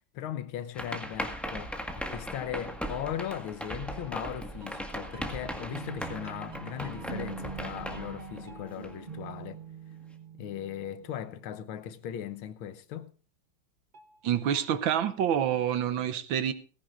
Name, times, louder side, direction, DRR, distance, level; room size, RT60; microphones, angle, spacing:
voice 1, 0.1-9.6 10.3-13.1, left 10 dB, 80° left, 1.7 m, -38 dB
sound 1, 0.7-9.2, equal, ahead, 1.2 m, -38 dB
sound 2, 4.0-11.7 13.9-14.8, right 5 dB, 40° right, 0.6 m, -45 dB
voice 2, 14.2-16.5, right 9 dB, 75° right, 1.6 m, -27 dB
18.5 x 15.5 x 2.5 m
omnidirectional pair, 2.2 m